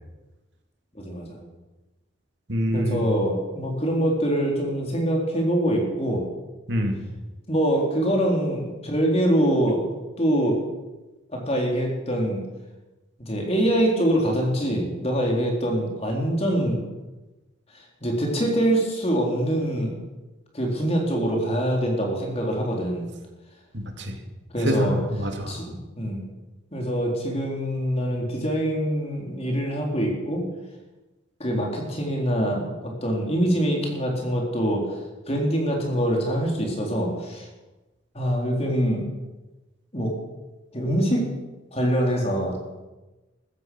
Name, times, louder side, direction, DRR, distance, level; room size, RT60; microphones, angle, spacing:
voice 1, 1.0-1.4 2.7-6.2 7.5-10.6 11.3-12.5 13.2-16.8 18.0-19.9 20.5-23.1 24.5-25.0 25.5-26.2 26.7-30.5 31.4-35.0 35.3-37.5 38.1-39.1 39.9-40.1 40.7-41.3 41.7-42.6, equal, 30° left, 0 dB, 3.7 m, -24 dB
voice 2, 2.5-3.1 6.7-7.0 23.7-24.1 24.6-25.6, equal, 60° right, 3 dB, 2.7 m, -26 dB
15.0 x 14.5 x 6.3 m, 1.1 s
head